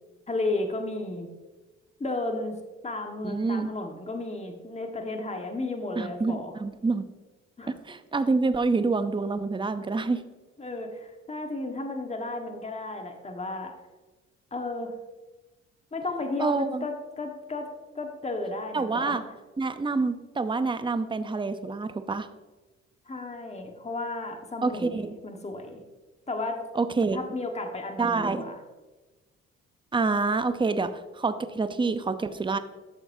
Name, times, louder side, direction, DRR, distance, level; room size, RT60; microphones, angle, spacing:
voice 1, 0.3-1.3 2.0-2.6 2.8-6.5 7.6-7.7 10.6-13.7 14.5-14.9 15.9-17.7 17.9-19.2 23.1-25.8 26.3-26.6 27.1-28.6, left 2 dB, 20° left, 3 dB, 1.5 m, -33 dB
voice 2, 3.2-3.7 6.0-7.1 7.7-10.3 16.4-16.9 18.7-19.2 19.6-22.3 24.6-25.1 26.7-27.2 28.0-28.4 29.9-32.6, right 3 dB, 15° right, 10 dB, 0.7 m, -27 dB
12.0 x 6.9 x 2.7 m, 1.2 s
hypercardioid pair, 50°, 30 cm